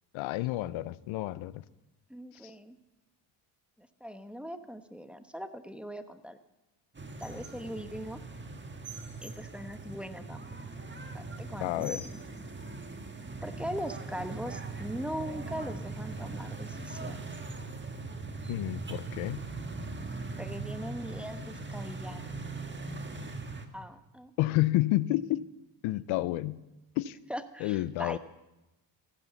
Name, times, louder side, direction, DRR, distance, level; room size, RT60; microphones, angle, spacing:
voice 1, 0.1-1.5 2.4-2.5 11.6-12.0 18.5-19.4 24.4-25.5 25.8-26.6 27.0-27.2 27.6-28.2, left 17 dB, 85° left, 19 dB, 0.6 m, -30 dB
voice 2, 2.1-2.8 3.8-6.4 7.2-8.2 9.2-10.4 11.1-12.2 13.4-17.3 20.4-22.3 23.7-24.3 27.3-28.2, equal, ahead, 9 dB, 1.0 m, -40 dB
sound 1, 7.0-23.7, right 3 dB, 25° right, 1.6 m, -40 dB
15.0 x 10.0 x 7.0 m, 0.99 s
cardioid pair, 75°, 46 cm